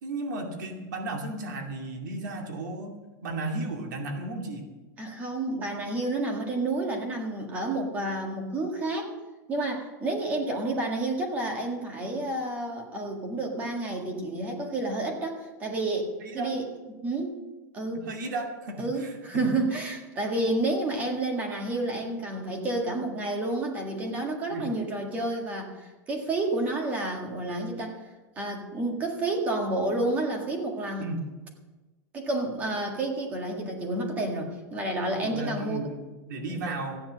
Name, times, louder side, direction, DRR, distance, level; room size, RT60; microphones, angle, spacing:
voice 1, 0.0-2.9 3.2-4.6 16.2-16.5 17.9-19.5 24.5-24.7 31.0-31.2 35.2-37.0, right 2 dB, 90° right, 3 dB, 2.4 m, -34 dB
voice 2, 5.0-9.1 9.5-16.7 17.0-17.4 17.7-18.1 18.8-28.0 28.3-31.0 32.1-35.8, right 2 dB, 15° right, 2 dB, 1.8 m, -30 dB
14.5 x 9.7 x 6.3 m, 1.2 s
supercardioid pair, 180°, 10 cm